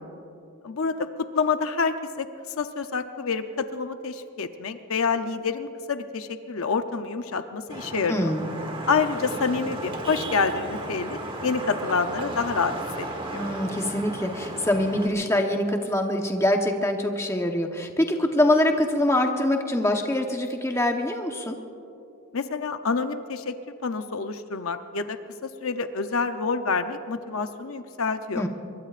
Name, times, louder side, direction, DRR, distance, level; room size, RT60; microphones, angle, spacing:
voice 1, 0.6-2.3 2.6-8.3 8.9-13.4 22.3-23.5 23.8-28.4, left 5 dB, 70° left, 8 dB, 0.7 m, -27 dB
Vehicle horn car horn honking / Traffic noise roadway noise, 7.7-15.1, right 1 dB, 25° right, 1.3 m, -34 dB
voice 2, 8.1-8.5 13.3-21.6 28.3-28.5, left 1 dB, 10° left, 3 dB, 1.0 m, -24 dB
24.0 x 22.0 x 2.5 m, 2.8 s
head